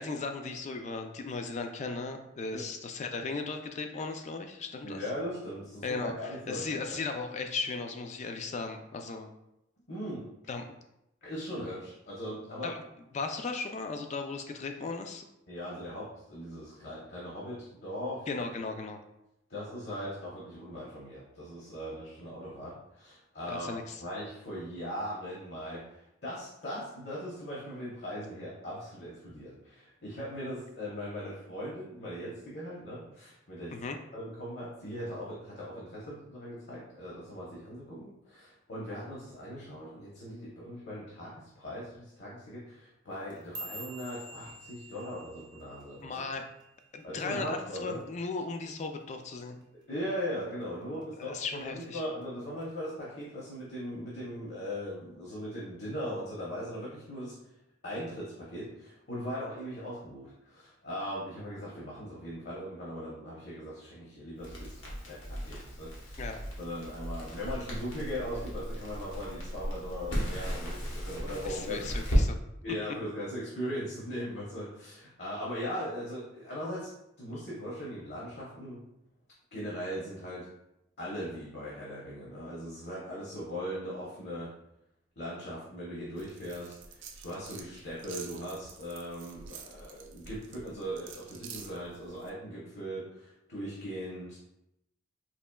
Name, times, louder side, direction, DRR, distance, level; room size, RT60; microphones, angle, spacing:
voice 1, 0.0-5.1 5.8-9.3 10.5-10.6 12.6-12.8 13.1-15.2 18.3-19.0 23.5-24.0 33.7-34.0 46.0-46.4 46.9-49.6 50.9-52.0 66.2-66.4 71.5-72.4, left 4 dB, 40° left, 6 dB, 0.3 m, -36 dB
voice 2, 4.8-7.0 9.9-10.3 11.2-12.7 15.5-18.5 19.5-23.7 24.0-33.7 34.1-46.2 47.0-48.0 49.9-57.4 57.8-66.2 66.6-71.9 72.6-76.9 77.2-78.8 79.5-80.5 81.0-84.5 85.2-94.4, equal, 55° left, -6 dB, 0.8 m, -39 dB
sound 1, 43.1-47.5 47.8-48.2 48.6-49.0 49.4-49.6 50.2-50.6 51.0-51.8 52.2-52.6 53.4-53.5, right 1 dB, 20° right, 0.6 m, -47 dB
Crackle, 64.4-72.2, equal, 85° left, 1.0 m, -35 dB
sound 2, 86.2-92.3, right 6 dB, 80° right, 0.4 m, -49 dB
4.2 x 2.8 x 2.2 m, 0.85 s
head